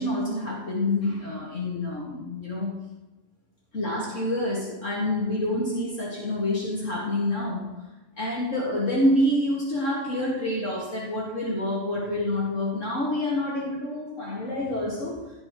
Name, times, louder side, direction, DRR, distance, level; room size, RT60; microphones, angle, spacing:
voice 1, 0.0-2.8 3.7-7.8 8.2-15.2, left 1 dB, 55° left, -5 dB, 2.4 m, -27 dB
16.0 x 6.2 x 3.1 m, 1.1 s
omnidirectional pair, 1.6 m